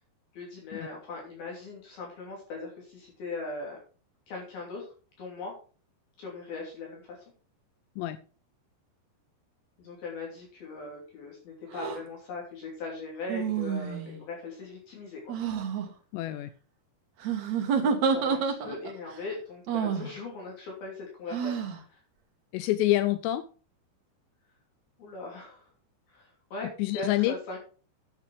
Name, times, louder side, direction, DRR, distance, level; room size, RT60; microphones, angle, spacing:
voice 1, 0.3-3.8 4.3-4.9 5.2-5.5 6.2-7.2 9.8-15.4 17.8-21.6 21.9-22.0 25.0-25.7 26.1-27.6, left 3 dB, 60° left, -2 dB, 4.7 m, -40 dB
sound 1, 11.7-12.0 13.3-14.2 15.3-15.9 17.2-19.0 19.7-20.1 21.3-21.8, right 6 dB, 60° right, 1.9 m, -29 dB
voice 2, 16.1-16.5 22.5-23.4 26.8-27.3, left 15 dB, 85° left, 12 dB, 2.8 m, -27 dB
9.8 x 8.0 x 4.9 m, 0.38 s
omnidirectional pair, 5.1 m